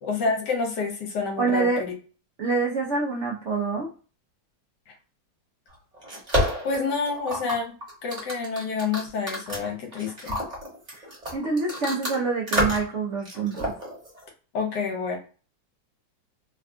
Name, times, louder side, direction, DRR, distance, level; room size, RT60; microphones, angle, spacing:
voice 1, 0.0-2.0 4.9-5.0 6.6-7.7 8.0-10.4 14.5-15.2, left 4 dB, 70° left, 2 dB, 1.4 m, -28 dB
voice 2, 1.4-1.8 2.4-3.9 11.3-13.7, right 4 dB, 55° right, -4 dB, 0.8 m, -26 dB
sound 1, 5.7-12.1 12.5-12.9 13.2-14.3, equal, 25° right, 1.2 m, -29 dB
3.4 x 2.3 x 2.4 m, 0.37 s
omnidirectional pair, 2.0 m